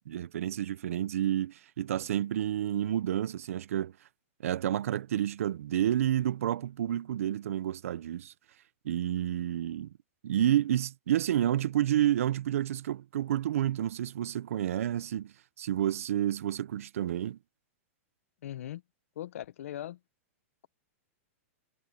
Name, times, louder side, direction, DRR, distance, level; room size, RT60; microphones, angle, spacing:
voice 1, 0.0-3.9 4.4-8.3 8.8-9.9 10.2-17.4, right 11 dB, 80° right, 0.7 m, -30 dB
voice 2, 18.4-18.8 19.2-20.0, left 12 dB, 75° left, 0.9 m, -39 dB
supercardioid pair, 155°, 8 cm